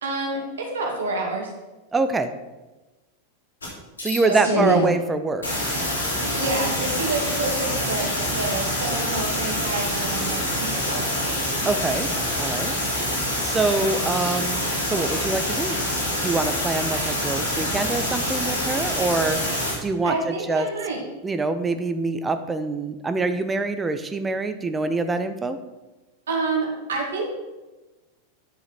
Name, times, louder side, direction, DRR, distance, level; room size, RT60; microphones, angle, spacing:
voice 1, 0.0-1.5 4.2-4.8 6.2-11.4 20.0-21.0 26.3-27.3, right 3 dB, 65° right, -1 dB, 2.3 m, -28 dB
voice 2, 1.9-2.3 4.0-5.4 11.6-12.1 12.4-12.8 13.4-14.6 14.9-15.8 16.2-20.7 21.2-25.6, right 3 dB, 15° right, 9 dB, 0.7 m, -25 dB
sound 1, 3.6-3.7 4.0-4.9 5.4-19.7, left 1 dB, 70° left, 3.4 m, -26 dB
10.5 x 6.0 x 4.2 m, 1.1 s
figure-of-eight pair, 90°, 0 cm